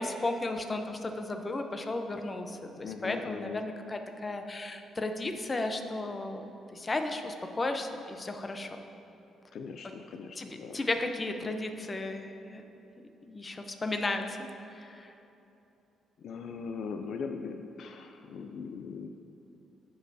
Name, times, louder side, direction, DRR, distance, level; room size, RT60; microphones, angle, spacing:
voice 1, 0.0-8.7 10.4-12.6 13.3-14.4 14.7-15.1, left 2 dB, 25° left, 6 dB, 0.7 m, -34 dB
voice 2, 2.8-3.6 9.5-10.8 16.2-19.1, left 5 dB, 65° left, 5 dB, 0.4 m, -40 dB
14.5 x 5.5 x 2.7 m, 2.9 s
cardioid pair, 90°, 0 cm